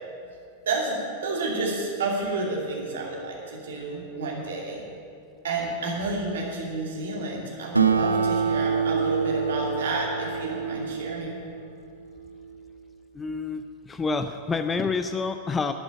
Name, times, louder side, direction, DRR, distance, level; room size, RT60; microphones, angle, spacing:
voice 1, 0.7-4.8 5.4-11.4, right 3 dB, 60° right, -3 dB, 2.6 m, -30 dB
Acoustic guitar, 7.7-12.6, right 5 dB, 80° right, 0.8 m, -26 dB
voice 2, 13.1-15.7, left 4 dB, 15° left, 9 dB, 0.5 m, -28 dB
11.5 x 7.9 x 9.8 m, 2.3 s
figure-of-eight pair, 90°, 0 cm